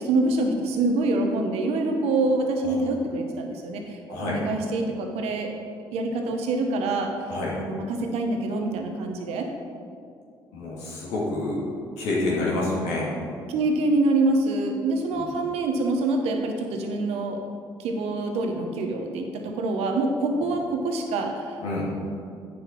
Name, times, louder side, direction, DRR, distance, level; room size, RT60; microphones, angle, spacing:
voice 1, 0.0-5.5 5.9-7.1 7.5-9.5 13.5-17.4 17.8-21.6, right 2 dB, 70° right, 3 dB, 1.1 m, -25 dB
voice 2, 10.5-11.6 12.0-13.1 15.1-15.2 21.6-21.8, left 2 dB, 75° left, -5 dB, 2.3 m, -28 dB
9.0 x 6.3 x 4.6 m, 2.3 s
hypercardioid pair, 50°, 11 cm